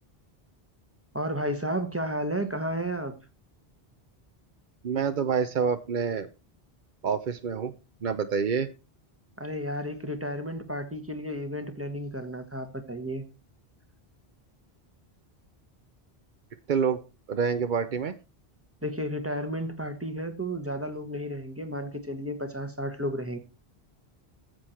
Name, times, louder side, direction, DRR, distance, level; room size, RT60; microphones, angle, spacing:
voice 1, 1.1-3.2 9.4-13.2 18.8-23.4, equal, 15° right, 1.4 m, -32 dB
voice 2, 4.8-6.3 7.0-7.7 8.0-8.7 16.7-17.0 17.3-18.1, right 6 dB, 55° right, 0.8 m, -27 dB
14.5 x 7.9 x 4.4 m
omnidirectional pair, 1.1 m